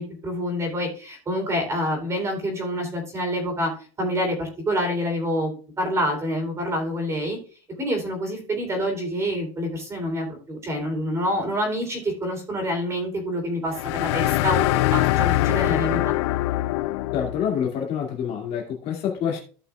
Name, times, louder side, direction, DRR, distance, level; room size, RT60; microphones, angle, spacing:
voice 1, 0.0-3.7 4.0-7.4 7.8-14.6 14.9-16.1, equal, 20° right, 3.4 m, -27 dB
sound 1, 13.7-17.5, left 17 dB, 85° left, 0.4 m, -23 dB
voice 2, 17.1-19.4, left 8 dB, 50° left, 2.3 m, -27 dB
15.5 x 5.8 x 2.3 m
supercardioid pair, 145°, 14 cm